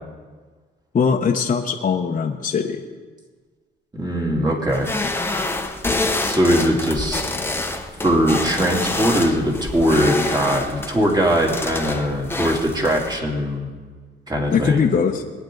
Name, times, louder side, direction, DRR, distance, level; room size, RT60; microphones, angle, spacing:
voice 1, 0.9-2.8 14.5-15.2, left 6 dB, 40° left, 1 dB, 1.0 m, -20 dB
voice 2, 3.9-4.9 6.3-7.3 8.0-13.7 14.3-14.9, equal, 20° right, 0 dB, 2.9 m, -20 dB
sound 1, 4.7-13.2, left 2 dB, 10° left, 1.0 m, -27 dB
21.5 x 9.9 x 3.9 m, 1.4 s
cardioid pair, 90°, 20 cm